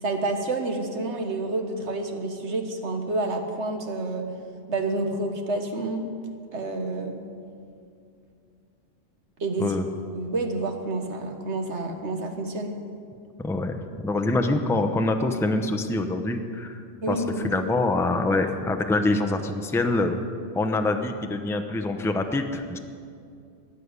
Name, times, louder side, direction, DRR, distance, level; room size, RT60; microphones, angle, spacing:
voice 1, 0.0-4.3 4.7-6.0 6.5-7.2 9.4-9.7 10.1-12.7 17.0-17.4, right 2 dB, 65° right, 5 dB, 1.6 m, -29 dB
voice 2, 13.4-20.2 20.5-22.8, left 2 dB, 5° left, 6 dB, 0.6 m, -25 dB
14.5 x 10.0 x 8.2 m, 2.4 s
omnidirectional pair, 1.3 m